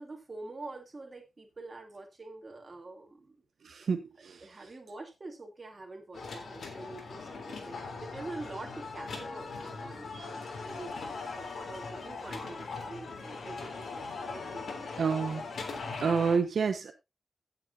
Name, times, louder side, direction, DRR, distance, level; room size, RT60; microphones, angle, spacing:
voice 1, 0.0-3.4 4.4-14.8, right 2 dB, 30° right, 2.9 m, -46 dB
voice 2, 3.6-4.4 10.1-10.3 15.0-15.4 16.0-16.9, right 5 dB, 75° right, 1.2 m, -29 dB
sound 1, 6.1-16.4, left 4 dB, 80° left, 3.4 m, -40 dB
16.5 x 7.7 x 2.7 m
wide cardioid pair, 165°, 0 cm